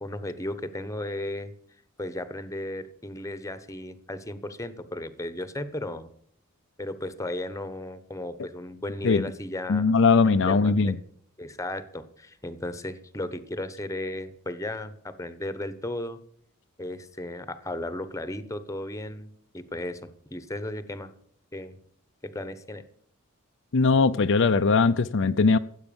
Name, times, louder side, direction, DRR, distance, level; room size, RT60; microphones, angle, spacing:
voice 1, 0.0-1.5 2.0-6.1 6.8-10.0 10.2-10.9 11.4-16.2 16.8-21.1 21.5-21.8 22.3-22.8, left 1 dB, 15° left, 1.0 m, -35 dB
voice 2, 9.7-11.0 23.7-25.6, left 4 dB, 60° left, 0.6 m, -20 dB
15.0 x 8.2 x 7.0 m
head